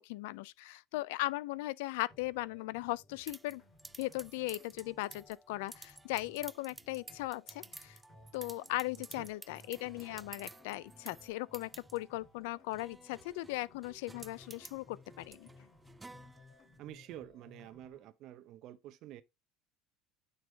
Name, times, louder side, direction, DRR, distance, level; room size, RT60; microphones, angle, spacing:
voice 1, 0.0-3.6 4.0-8.0 8.3-15.5, left 19 dB, 70° left, 0.3 m, -38 dB
sound 1, 2.1-18.1, left 2 dB, 45° left, 2.0 m, -61 dB
sound 2, 3.3-16.8, right 3 dB, 15° right, 0.3 m, -53 dB
voice 2, 9.0-9.3 16.8-19.2, right 13 dB, 55° right, 0.7 m, -49 dB
9.2 x 3.4 x 3.1 m
hypercardioid pair, 70°, 0 cm